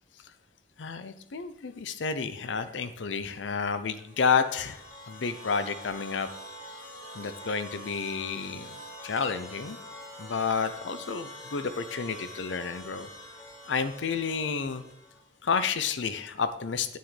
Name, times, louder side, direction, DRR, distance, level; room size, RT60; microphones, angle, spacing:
voice 1, 0.8-6.3 7.1-8.8 9.0-9.8 10.2-13.1 13.7-14.8 15.4-17.0, left 5 dB, 80° left, 11 dB, 0.6 m, -30 dB
sound 1, 4.1-15.3, left 1 dB, 20° left, 2.8 m, -45 dB
9.4 x 9.2 x 3.3 m, 0.79 s
head